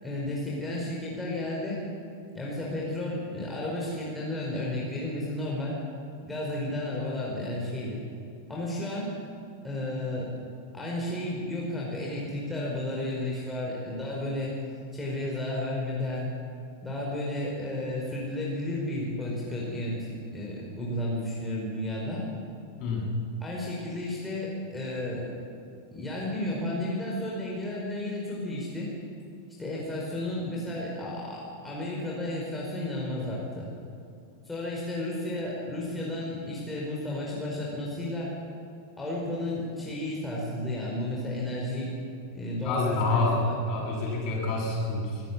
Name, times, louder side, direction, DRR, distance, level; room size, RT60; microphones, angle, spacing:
voice 1, 0.0-1.8 2.3-5.8 6.2-8.0 8.5-9.2 9.6-10.3 10.7-14.5 14.9-16.3 16.8-22.2 23.4-25.3 25.9-28.9 29.6-33.7 34.4-38.3 39.0-41.9 42.3-43.6, left 1 dB, 10° left, -4 dB, 4.9 m, -32 dB
voice 2, 22.8-23.1 42.6-43.4 43.7-45.2, left 2 dB, 40° left, -2 dB, 7.6 m, -28 dB
25.0 x 14.5 x 8.6 m, 2.4 s
figure-of-eight pair, 90°, 0 cm